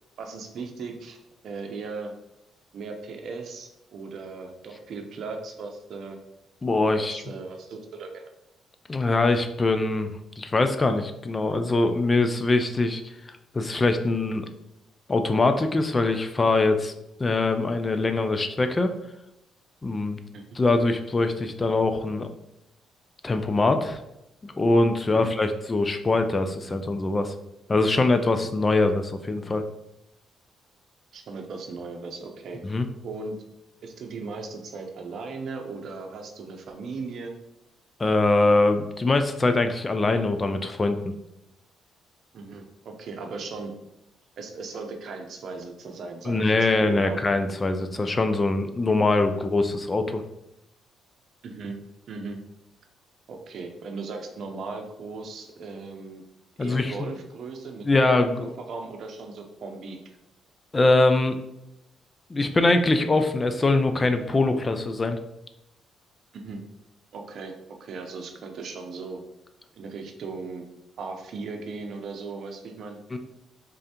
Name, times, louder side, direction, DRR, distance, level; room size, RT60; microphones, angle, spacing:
voice 1, 0.2-1.2 1.4-2.1 2.7-6.2 7.0-8.3 20.3-20.4 25.1-25.3 31.1-32.8 33.0-33.3 33.8-37.3 42.3-43.7 44.4-47.2 51.4-51.8 52.1-52.4 53.3-56.2 56.6-60.0 66.3-66.6 67.1-69.2 69.8-70.6 71.0-73.0, right 4 dB, 65° right, 4 dB, 0.6 m, -37 dB
voice 2, 6.6-7.2 8.9-13.1 13.5-14.5 15.1-16.9 17.2-18.9 19.8-20.2 20.6-22.3 23.2-24.0 24.4-27.3 27.7-29.6 32.6-32.9 38.0-41.1 46.3-50.2 56.6-56.9 57.8-58.5 60.7-61.4 62.3-65.2 73.1-73.2, left 2 dB, 25° left, 8 dB, 0.4 m, -23 dB
3.8 x 3.2 x 2.8 m, 0.86 s
cardioid pair, 90°, 0 cm